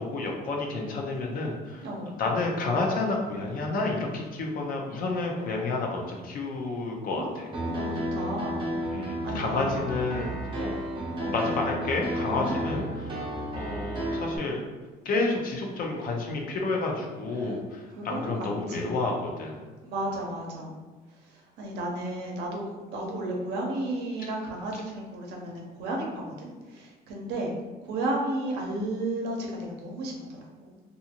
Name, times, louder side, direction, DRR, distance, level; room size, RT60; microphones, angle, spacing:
voice 1, 0.0-1.9 2.2-7.5 8.9-10.3 10.6-10.8 11.3-14.6 15.0-19.6, left 3 dB, 55° left, 0 dB, 0.6 m, -30 dB
voice 2, 1.8-2.2 7.1-8.6 9.1-9.7 10.2-10.4 11.2-11.6 12.3-12.6 17.3-17.6 17.9-19.1 19.8-20.8 21.1-22.6 22.9-27.5 27.8-30.8, right 1 dB, 80° right, -1 dB, 0.7 m, -34 dB
Piano, 7.5-14.4, equal, 30° right, 0.6 m, -32 dB
2.5 x 2.5 x 2.8 m, 1.3 s
cardioid pair, 110°, 17 cm